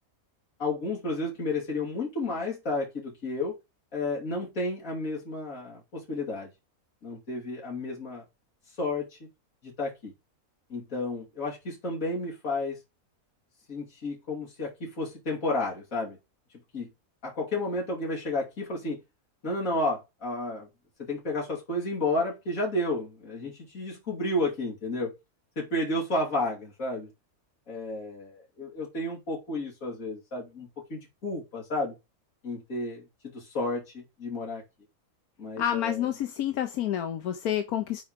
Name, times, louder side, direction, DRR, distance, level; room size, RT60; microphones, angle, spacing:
voice 1, 0.6-3.6 3.9-6.5 7.0-8.2 8.8-9.1 9.6-10.1 10.7-12.8 13.7-16.2 16.7-16.9 17.2-19.0 19.4-20.7 21.0-25.1 25.6-27.1 27.7-32.0 32.4-34.6 35.4-36.1, left 2 dB, 65° left, 3.4 m, -32 dB
voice 2, 35.6-38.0, left 10 dB, 85° left, 1.3 m, -29 dB
7.8 x 4.8 x 5.1 m
omnidirectional pair, 1.5 m